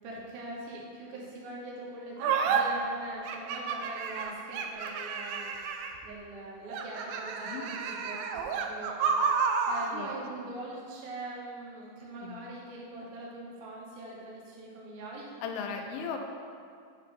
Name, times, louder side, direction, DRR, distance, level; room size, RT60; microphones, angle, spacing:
voice 1, 0.0-9.0 9.3-15.3, right 2 dB, 65° right, -4 dB, 2.5 m, -42 dB
sound 1, 2.2-2.6 3.3-6.1 6.7-9.9, right 6 dB, 80° right, 2.1 m, -30 dB
voice 2, 15.4-16.2, left 6 dB, 85° left, 3 dB, 2.5 m, -37 dB
8.5 x 3.2 x 5.8 m, 2.3 s
omnidirectional pair, 4.3 m